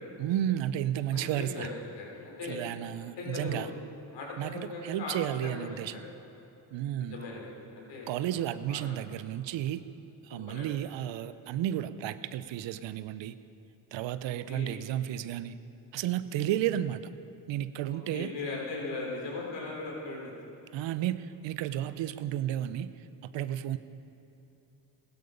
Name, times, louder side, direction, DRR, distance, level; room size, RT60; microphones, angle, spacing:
voice 1, 0.2-1.7 2.5-3.7 4.4-6.0 6.7-7.2 8.1-9.8 10.2-13.3 13.9-15.6 15.9-17.0 17.5-18.3 20.7-22.9 23.2-23.8, right 11 dB, 75° right, 14 dB, 0.7 m, -32 dB
voice 2, 1.1-2.6 3.2-3.7 4.1-6.0 7.0-9.0 10.3-10.7 14.3-14.8 17.9-20.3, left 3 dB, 70° left, -2 dB, 4.1 m, -39 dB
16.0 x 12.5 x 5.2 m, 2.9 s
supercardioid pair, 60°, 45 cm